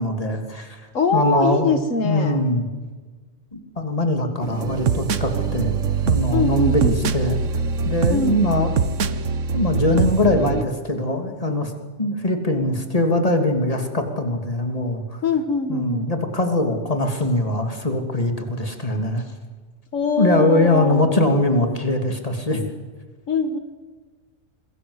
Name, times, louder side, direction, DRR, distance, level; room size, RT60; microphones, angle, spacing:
voice 1, 0.0-0.8 1.1-1.7 2.0-2.7 3.5-5.7 6.0-7.4 7.8-8.9 9.5-11.7 12.0-15.2 15.7-19.2 20.2-22.7, left 1 dB, 25° left, 5 dB, 3.1 m, -22 dB
voice 2, 0.9-2.4 6.3-7.1 8.1-8.5 15.2-16.1 19.9-21.1 23.3-23.6, left 4 dB, 75° left, 8 dB, 2.0 m, -23 dB
sound 1, 4.4-10.6, right 6 dB, 70° right, 1.4 m, -23 dB
27.0 x 20.5 x 8.2 m, 1.4 s
omnidirectional pair, 1.4 m